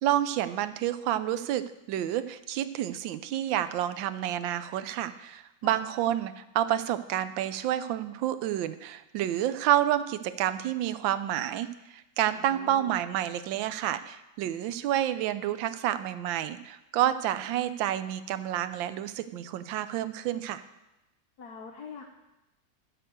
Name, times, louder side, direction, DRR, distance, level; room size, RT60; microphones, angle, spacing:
voice 1, 0.0-20.6, right 12 dB, 80° right, 12 dB, 1.3 m, -29 dB
voice 2, 12.3-13.0 21.4-22.0, left 5 dB, 60° left, 1 dB, 1.3 m, -44 dB
13.0 x 4.5 x 7.9 m, 0.95 s
omnidirectional pair, 2.1 m